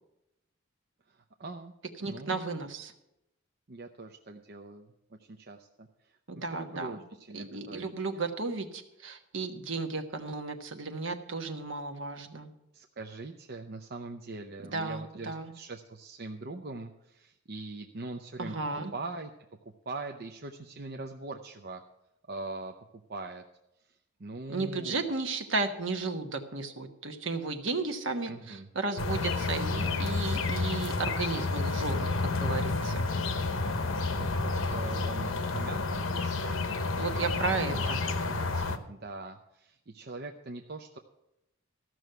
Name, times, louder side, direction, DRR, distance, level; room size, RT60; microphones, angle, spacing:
voice 1, 1.1-1.7 2.0-2.3 3.7-8.2 12.7-18.6 18.9-19.3 19.9-21.8 22.3-23.4 23.8-25.0 28.2-28.7 33.7-35.8 36.1-37.0 37.7-41.0, right 3 dB, 50° right, 3 dB, 0.7 m, -42 dB
voice 2, 2.0-2.9 6.3-7.0 7.3-12.5 14.7-15.5 18.4-18.9 24.5-33.0 37.0-38.0, right 3 dB, 65° right, 6 dB, 1.3 m, -34 dB
Driveway-Bus, 29.0-38.8, left 3 dB, 80° left, 1.0 m, -30 dB
14.0 x 6.2 x 8.0 m, 0.87 s
head